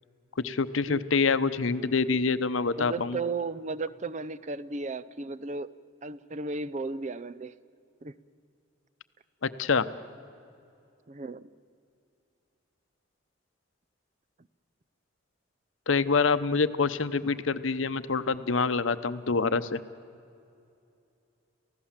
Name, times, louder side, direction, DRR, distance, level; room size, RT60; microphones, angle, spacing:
voice 1, 0.4-3.2 9.4-9.9 15.9-19.8, left 4 dB, 80° left, 13 dB, 0.8 m, -26 dB
voice 2, 2.8-5.7 6.0-7.5 8.0-8.1 11.1-11.5, right 3 dB, 35° right, 16 dB, 0.6 m, -35 dB
30.0 x 15.5 x 7.4 m, 2.6 s
head